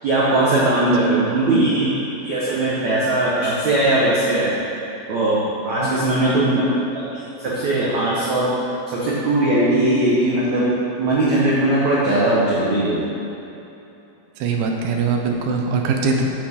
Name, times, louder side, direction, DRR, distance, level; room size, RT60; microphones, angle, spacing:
voice 1, 0.0-1.9 2.2-4.5 5.1-6.6 7.4-8.5 8.9-10.7 11.0-13.0, right 2 dB, 65° right, -7 dB, 1.8 m, -19 dB
voice 2, 5.8-6.5 14.4-16.3, right 4 dB, 80° right, 2 dB, 3.4 m, -23 dB
14.5 x 8.9 x 3.8 m, 2.9 s
omnidirectional pair, 5.3 m